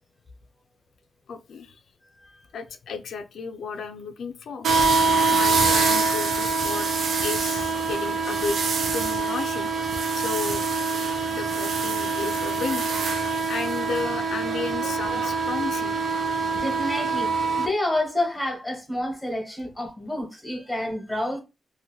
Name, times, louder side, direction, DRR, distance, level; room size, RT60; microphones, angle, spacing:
voice 1, 1.3-1.8 2.5-4.7 5.3-8.6 8.9-9.7 10.2-10.7 11.3-12.8 13.5-16.0, left 5 dB, 90° left, 0.4 m, -33 dB
sound 1, 4.6-17.7, right 4 dB, 70° right, 0.5 m, -24 dB
voice 2, 16.3-17.3 17.6-21.4, left 1 dB, 5° left, 1.1 m, -29 dB
2.7 x 2.5 x 3.0 m
wide cardioid pair, 155°, 0 cm